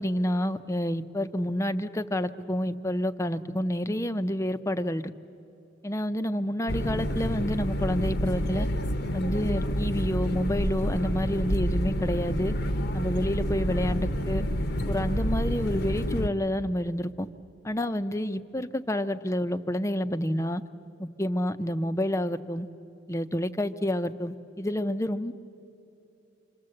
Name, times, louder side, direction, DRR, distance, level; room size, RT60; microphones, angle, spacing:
voice 1, 0.0-5.1 5.8-8.7 9.1-12.5 12.9-14.4 14.9-17.3 17.6-20.6 21.0-22.7 23.1-25.3, equal, 15° left, 11 dB, 0.6 m, -29 dB
sound 1, 6.7-16.3, equal, 55° left, 0.9 m, -28 dB
27.5 x 25.0 x 7.8 m, 2.8 s
head